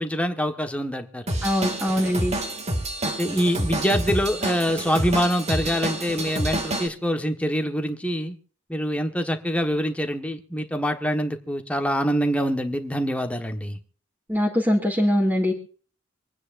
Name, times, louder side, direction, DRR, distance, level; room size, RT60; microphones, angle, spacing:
voice 1, 0.0-1.2 3.0-8.3 8.7-13.8, equal, 5° left, 1.3 m, -25 dB
Drum kit / Drum, 1.3-6.9, right 1 dB, 35° right, 2.0 m, -28 dB
voice 2, 1.4-2.4 14.3-15.5, equal, 10° right, 2.2 m, -22 dB
26.0 x 9.5 x 2.5 m
head